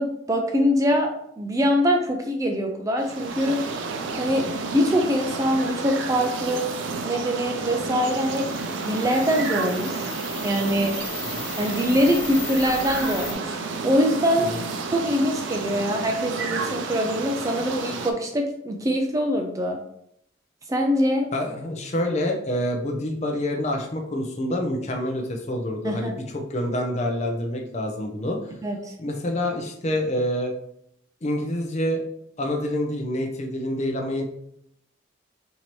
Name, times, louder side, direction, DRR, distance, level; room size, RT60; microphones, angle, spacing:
voice 1, 0.0-3.6 4.2-6.7 7.0-8.5 8.8-10.1 10.4-11.0 11.6-13.6 13.8-14.5 14.9-19.8 20.7-21.3 25.8-26.1 28.6-28.9, equal, 15° right, 3 dB, 0.3 m, -23 dB
sound 1, 3.0-18.1, right 4 dB, 80° right, 0.5 m, -31 dB
sound 2, 8.0-13.3, left 5 dB, 55° left, 0.9 m, -37 dB
voice 2, 21.3-28.5 29.0-30.5 31.2-32.0 32.4-34.2, left 1 dB, 35° left, 2 dB, 0.5 m, -27 dB
4.3 x 2.7 x 3.0 m, 0.73 s
head